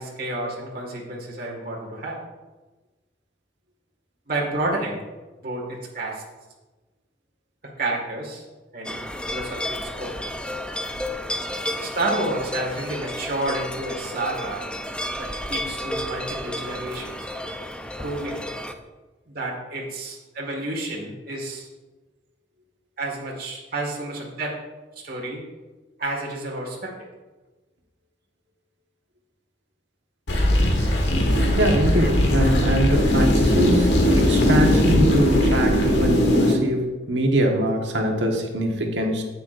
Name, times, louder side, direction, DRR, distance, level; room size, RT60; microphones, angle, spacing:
voice 1, 0.0-2.2 4.3-5.0 5.4-6.2 7.8-8.4 8.7-9.0 9.3-10.1 11.8-14.7 15.2-17.4 18.0-18.4 19.3-21.7 23.0-24.6 25.0-25.4 26.0-26.9, right 2 dB, 55° right, -2 dB, 1.9 m, -30 dB
sound 1, 8.8-18.7, left 1 dB, 5° left, 0.4 m, -32 dB
sound 2, 30.3-36.5, left 1 dB, 75° left, 1.4 m, -19 dB
voice 2, 31.6-39.2, right 1 dB, 90° right, 2 dB, 1.3 m, -23 dB
9.9 x 8.4 x 2.6 m, 1.2 s
head